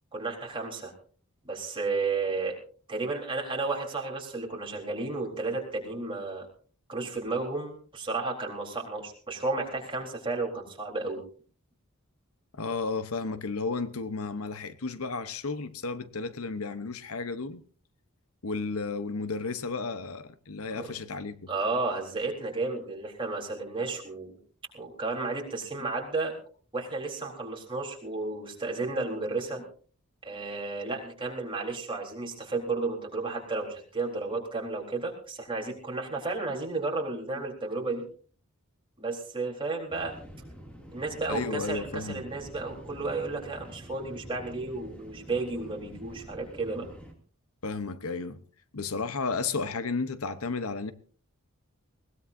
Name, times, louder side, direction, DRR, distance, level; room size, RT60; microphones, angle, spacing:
voice 1, 0.1-0.9 1.4-2.6 2.9-6.5 6.9-11.2 20.7-20.9 21.5-24.3 24.7-26.3 26.7-29.6 30.2-38.0 39.0-40.1 40.9-46.9, right 3 dB, 25° right, 4.0 m, -33 dB
voice 2, 12.6-17.6 18.4-21.5 41.3-42.2 47.6-48.4 48.7-50.9, left 4 dB, 75° left, 1.0 m, -33 dB
sound 1, 39.9-47.1, equal, 5° left, 2.6 m, -47 dB
20.5 x 19.5 x 2.7 m
head